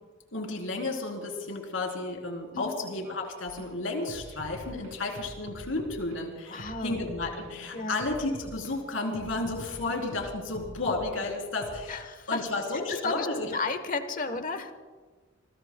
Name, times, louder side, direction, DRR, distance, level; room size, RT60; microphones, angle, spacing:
voice 1, 0.3-12.0 12.3-13.5 14.3-14.4, left 2 dB, 80° left, 1 dB, 3.9 m, -32 dB
sound 1, 3.5-3.7 4.1-6.2 6.6-8.7 9.1-11.3 11.6-11.8, equal, 85° right, 3.6 m, -45 dB
voice 2, 6.5-7.1 7.7-8.0 11.9-12.4 12.9-14.7, left 3 dB, 45° left, 9 dB, 1.2 m, -33 dB
28.0 x 21.5 x 2.3 m, 1.4 s
head